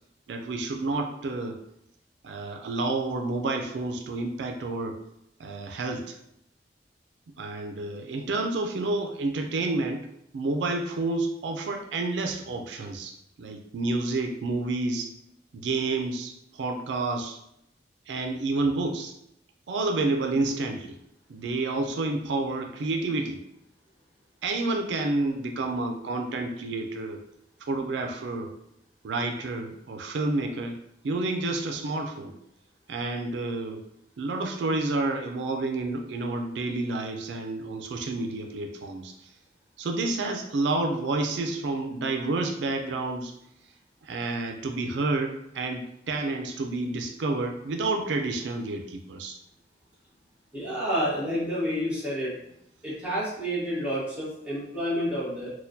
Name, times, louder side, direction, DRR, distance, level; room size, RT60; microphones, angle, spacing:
voice 1, 0.3-1.6 2.2-5.0 5.4-6.1 7.4-10.0 10.3-13.1 13.4-15.1 15.5-17.4 18.1-19.1 19.7-21.0 21.3-23.4 24.4-27.2 27.7-28.5 29.0-32.3 32.9-33.8 34.2-39.1 39.8-43.3 44.0-49.4, right 2 dB, 85° right, 3 dB, 0.4 m, -29 dB
voice 2, 50.5-52.3 52.8-55.5, equal, 10° right, -8 dB, 1.3 m, -29 dB
4.2 x 2.2 x 2.6 m, 0.77 s
head